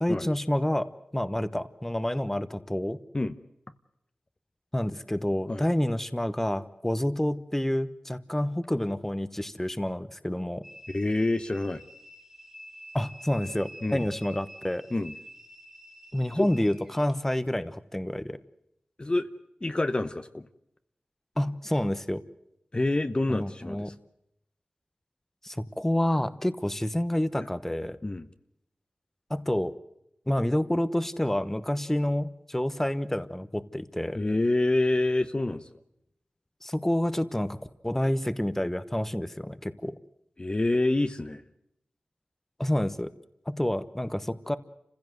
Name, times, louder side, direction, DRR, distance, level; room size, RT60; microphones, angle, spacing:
voice 1, 0.0-3.0 4.7-10.6 12.9-14.8 16.1-18.4 21.4-22.2 23.3-23.9 25.4-28.0 29.3-29.7 30.3-34.2 36.6-37.6 37.8-40.0 42.6-43.1 43.5-44.6, left 1 dB, 10° left, 13 dB, 1.1 m, -28 dB
sound 1, 10.6-17.1, equal, 10° right, 2.2 m, -48 dB
voice 2, 10.9-11.8 13.8-14.1 14.9-15.1 16.3-16.5 19.0-19.3 19.6-20.5 22.7-23.9 28.0-28.3 34.1-35.6 40.4-41.4, left 2 dB, 30° left, 10 dB, 1.0 m, -27 dB
29.0 x 16.0 x 7.9 m, 0.81 s
wide cardioid pair, 65°, 3 cm